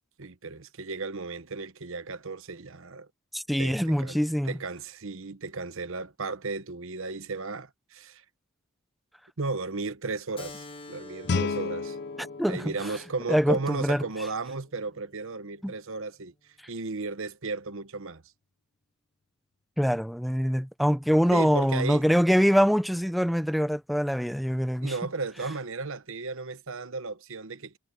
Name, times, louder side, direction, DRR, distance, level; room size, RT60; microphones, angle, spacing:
voice 1, 0.2-3.1 3.6-8.2 9.4-12.0 12.5-16.3 16.7-18.2 21.3-22.1 24.8-27.8, right 3 dB, 65° right, 1.1 m, -35 dB
voice 2, 3.3-4.5 12.4-12.6 13.3-14.0 15.6-15.7 19.8-24.9, equal, ahead, 0.6 m, -24 dB
Keyboard (musical), 10.4-15.5, left 2 dB, 25° left, 1.5 m, -49 dB
Guitar, 11.2-14.0, left 4 dB, 50° left, 0.6 m, -33 dB
head